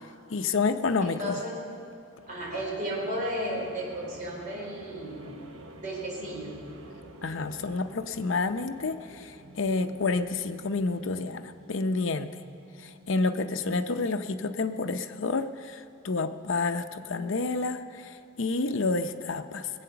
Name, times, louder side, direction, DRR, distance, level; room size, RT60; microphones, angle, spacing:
voice 1, 0.3-1.4 7.2-12.4 12.8-19.7, left 3 dB, 65° left, 9 dB, 0.6 m, -29 dB
voice 2, 1.0-1.6 2.3-5.3 5.8-6.6, equal, 40° right, -4 dB, 4.2 m, -34 dB
sound 1, 2.1-15.4, right 1 dB, 80° right, 1.1 m, -50 dB
21.0 x 8.5 x 6.9 m, 2.6 s
head